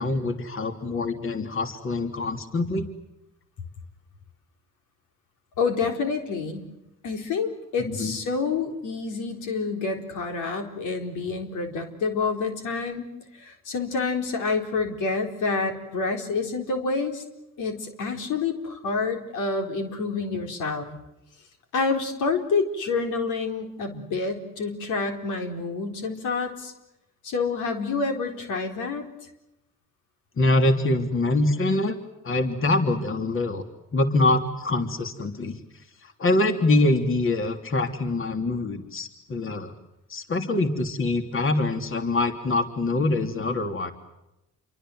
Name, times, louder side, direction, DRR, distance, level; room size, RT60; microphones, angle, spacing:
voice 1, 0.0-2.8 7.8-8.1 30.4-32.0 32.2-33.6 33.9-35.6 36.0-39.7 40.1-43.9, left 2 dB, 45° left, 6 dB, 3.3 m, -24 dB
voice 2, 5.6-6.6 7.0-13.0 13.3-17.2 17.6-20.9 21.7-26.7 27.2-29.1, left 4 dB, 85° left, 4 dB, 4.2 m, -28 dB
28.5 x 24.0 x 7.9 m, 0.90 s
cardioid pair, 90°, 30 cm